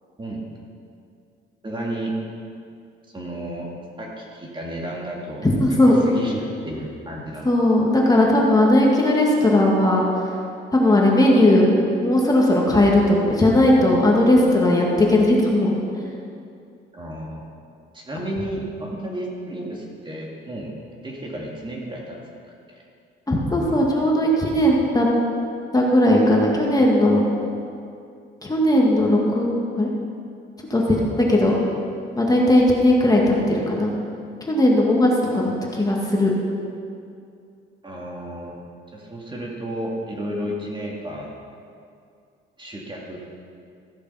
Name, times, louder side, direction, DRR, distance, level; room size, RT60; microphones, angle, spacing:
voice 1, 1.6-2.1 3.1-3.7 4.0-5.5 5.9-7.5 16.9-17.4 17.9-20.7 21.0-22.2 22.7-22.8 37.8-38.6 38.9-41.3 42.6-43.2, right 1 dB, 25° right, -2 dB, 2.2 m, -32 dB
voice 2, 5.4-6.0 7.5-10.0 10.7-11.7 12.0-15.7 16.0-16.1 23.3-25.1 25.7-27.3 28.4-29.5 29.8-29.9 30.7-31.0 31.3-31.5 32.1-33.9 34.4-36.3, left 1 dB, 20° left, -2 dB, 2.0 m, -17 dB
15.0 x 6.7 x 5.7 m, 2.4 s
cardioid pair, 90°, 20 cm